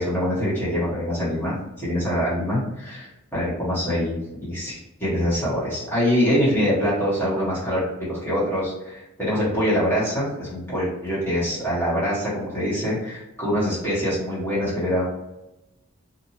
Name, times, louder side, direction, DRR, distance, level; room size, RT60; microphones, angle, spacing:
voice 1, 0.0-7.8 8.1-15.1, equal, 10° left, -9 dB, 1.2 m, -24 dB
2.7 x 2.6 x 2.8 m, 0.92 s
head